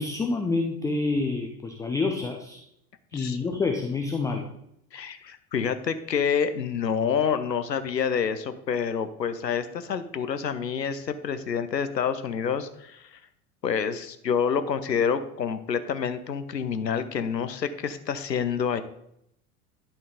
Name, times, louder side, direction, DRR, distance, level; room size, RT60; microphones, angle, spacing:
voice 1, 0.0-2.6 3.1-4.5, left 3 dB, 5° left, 4 dB, 0.4 m, -27 dB
voice 2, 4.9-13.2 13.6-18.8, left 7 dB, 85° left, 11 dB, 0.7 m, -28 dB
11.5 x 4.4 x 3.8 m, 0.76 s
figure-of-eight pair, 75°, 49 cm